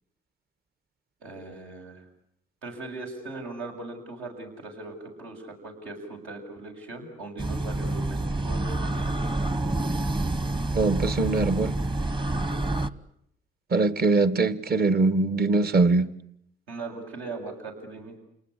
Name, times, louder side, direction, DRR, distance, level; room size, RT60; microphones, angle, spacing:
voice 1, 1.2-2.0 2.6-9.2 16.7-18.2, right 3 dB, 85° right, 2 dB, 7.6 m, -39 dB
sound 1, 7.4-12.9, right 2 dB, 25° right, 1.1 m, -28 dB
voice 2, 10.7-11.7 13.7-16.1, right 3 dB, 50° right, 13 dB, 1.7 m, -22 dB
28.5 x 19.5 x 9.9 m, 0.75 s
cardioid pair, 90°, 20 cm